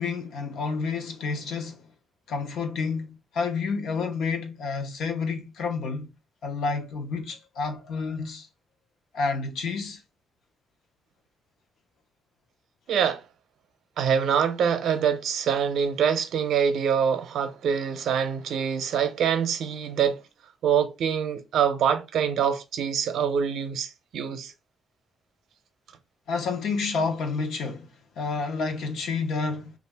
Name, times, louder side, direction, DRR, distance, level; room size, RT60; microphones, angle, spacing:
voice 1, 0.0-1.9 2.3-6.1 6.4-8.5 9.1-10.0 26.3-27.9 28.2-29.7, left 4 dB, 70° left, 0.7 m, -29 dB
voice 2, 12.9-13.2 14.0-20.2 20.6-24.5, right 7 dB, 65° right, 0.6 m, -25 dB
3.1 x 2.4 x 3.4 m
cardioid pair, 180°, 0 cm